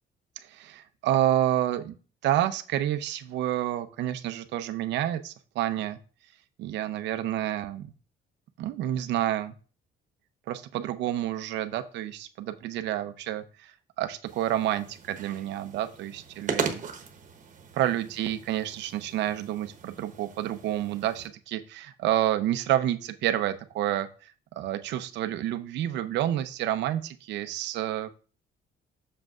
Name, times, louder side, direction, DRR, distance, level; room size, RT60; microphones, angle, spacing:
voice 1, 0.5-2.0 2.2-6.0 6.6-7.9 8.6-9.5 10.5-13.7 14.0-16.9 17.7-24.1 24.6-28.1, right 12 dB, 80° right, 10 dB, 0.7 m, -29 dB
sound 1, 14.3-21.3, right 6 dB, 45° right, 1.1 m, -38 dB
7.6 x 6.7 x 2.4 m, 0.37 s
cardioid pair, 125°, 18 cm